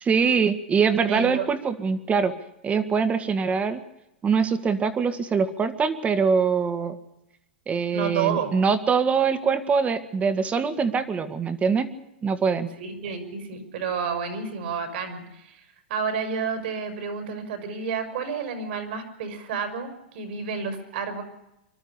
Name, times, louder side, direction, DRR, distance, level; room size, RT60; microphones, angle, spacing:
voice 1, 0.0-2.3 2.6-3.8 4.2-7.0 7.7-11.9 12.2-12.7, right 5 dB, 20° right, 10 dB, 2.0 m, -23 dB
voice 2, 1.1-1.5 7.9-8.5 12.8-15.6 15.9-21.2, right 6 dB, 65° right, 7 dB, 5.5 m, -30 dB
25.0 x 12.5 x 9.8 m, 0.89 s
hypercardioid pair, 110°, 6 cm